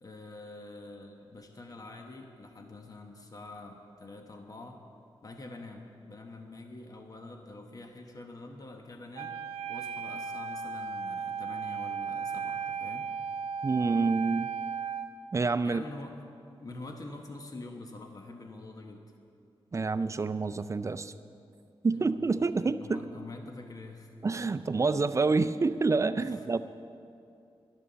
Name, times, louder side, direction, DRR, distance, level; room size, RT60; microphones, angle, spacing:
voice 1, 0.0-4.8 5.2-9.4 9.7-13.1 13.5-13.7 15.6-16.2 16.6-19.0 21.9-24.5 26.2-26.6, left 2 dB, 40° left, 3 dB, 1.1 m, -46 dB
Wind instrument woodwind instrument, 9.2-15.1, right 6 dB, 85° right, 0.7 m, -35 dB
voice 2, 13.6-14.5 15.3-15.8 19.7-21.1 21.8-23.0 24.2-26.6, right 4 dB, 30° right, 11 dB, 0.4 m, -27 dB
12.5 x 11.5 x 6.9 m, 2.5 s
wide cardioid pair, 130°, 10 cm